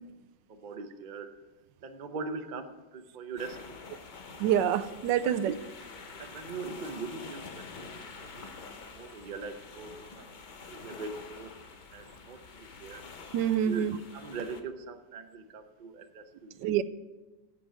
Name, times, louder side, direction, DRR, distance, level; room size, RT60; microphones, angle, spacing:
voice 1, 0.5-1.3 1.8-3.8 6.2-7.9 8.2-8.5 8.8-10.4 10.7-11.5 11.9-13.0 13.6-16.7, right 4 dB, 40° right, 7 dB, 0.7 m, -41 dB
sound 1, 3.4-14.6, left 4 dB, 45° left, 0.6 m, -47 dB
voice 2, 4.4-5.5 13.3-14.0 16.6-16.8, right 10 dB, 85° right, 14 dB, 1.2 m, -26 dB
16.0 x 6.1 x 5.0 m, 1.2 s
omnidirectional pair, 1.9 m